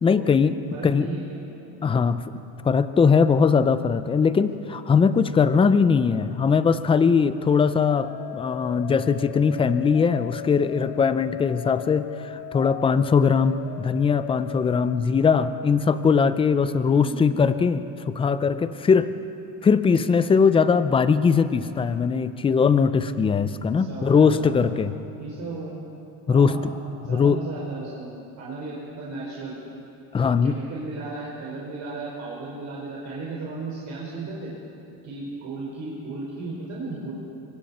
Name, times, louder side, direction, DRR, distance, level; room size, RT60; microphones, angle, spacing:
voice 1, 0.0-0.6 0.8-1.1 1.8-2.2 2.6-19.1 19.6-24.9 26.3-26.5 27.1-27.4 30.1-30.6, left 5 dB, 10° left, 12 dB, 0.5 m, -20 dB
voice 2, 0.7-1.4 16.9-17.3 23.8-24.6 25.2-25.8 26.3-26.7 27.0-28.1 28.4-29.6 30.4-34.5 35.0-37.1, right 3 dB, 35° right, -5 dB, 4.8 m, -35 dB
sound 1, 7.9-15.0, left 15 dB, 70° left, 1.2 m, -38 dB
25.5 x 24.5 x 4.3 m, 2.8 s
supercardioid pair, 130°, 48 cm